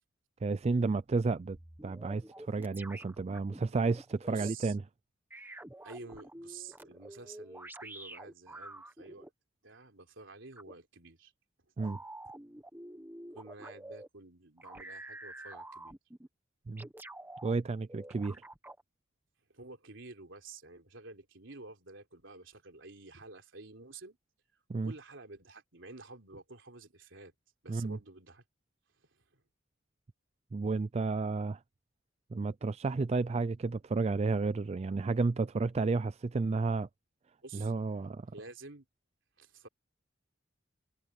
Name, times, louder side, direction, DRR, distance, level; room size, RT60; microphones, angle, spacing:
voice 1, 0.4-1.6 1.8-4.8 11.8-12.0 16.7-16.9 17.4-18.4 24.7-24.9 27.7-28.0 30.5-31.6 32.3-36.9 37.5-38.3, right 3 dB, 35° right, 0.4 m, -31 dB
sound 1, 1.5-4.5 5.3-9.3 10.6-10.7 11.8-14.1 14.6-16.3 16.8-17.5 17.9-18.8, right 1 dB, 10° right, 1.3 m, -48 dB
voice 2, 4.2-4.8 5.8-9.3 9.6-11.3 13.3-16.0 19.5-24.2 24.8-27.3 27.6-28.4 29.1-29.4 37.4-37.7 38.3-38.9 39.4-39.7, right 3 dB, 70° right, 3.8 m, -50 dB
head